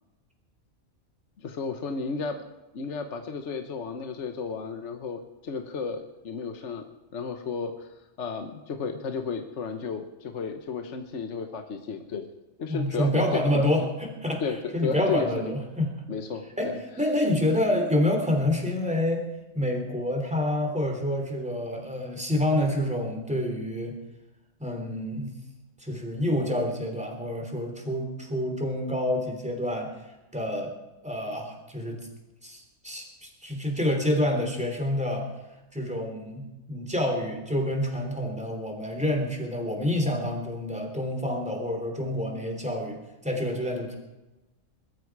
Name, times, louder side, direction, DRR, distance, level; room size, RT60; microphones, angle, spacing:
voice 1, 1.4-2.4 2.7-6.8 7.1-7.9 8.2-12.3 12.6-13.9 14.4-15.5 16.1-16.4, left 5 dB, 60° left, 6 dB, 1.3 m, -33 dB
voice 2, 12.7-15.9 16.6-19.2 19.5-24.0 24.6-25.3 25.8-29.9 30.3-30.7 31.0-32.0 32.4-35.3 35.7-43.0 43.2-43.9, left 1 dB, 5° right, 3 dB, 3.1 m, -28 dB
21.0 x 13.0 x 4.8 m, 1.0 s
omnidirectional pair, 1.4 m